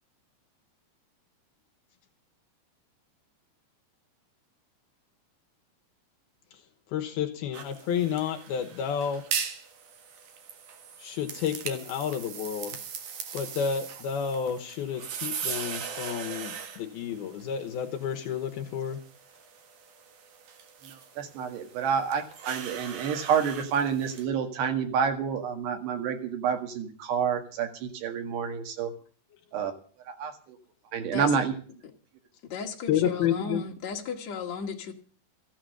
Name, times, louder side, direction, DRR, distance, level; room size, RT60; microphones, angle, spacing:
voice 1, 6.9-9.2 11.0-12.8 13.3-19.0 32.9-33.6, left 8 dB, 75° left, 4 dB, 3.0 m, -30 dB
sound 1, 7.5-24.2, right 7 dB, 60° right, 2.8 m, -40 dB
voice 2, 20.8-28.9 29.5-29.7 30.2-30.6 30.9-31.6, right 7 dB, 90° right, 6 dB, 4.0 m, -29 dB
voice 3, 32.5-34.9, left 5 dB, 50° left, 0 dB, 3.1 m, -35 dB
15.0 x 8.9 x 7.9 m, 0.42 s
omnidirectional pair, 4.7 m